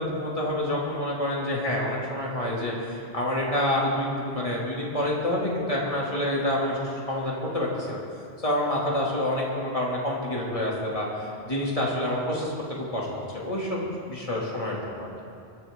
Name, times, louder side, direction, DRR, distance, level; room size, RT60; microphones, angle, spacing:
voice 1, 0.0-8.0 8.4-11.1 11.4-12.5 12.8-13.8 14.1-15.1, left 1 dB, 30° left, -4 dB, 3.1 m, -27 dB
22.0 x 14.5 x 3.9 m, 2.4 s
omnidirectional pair, 1.1 m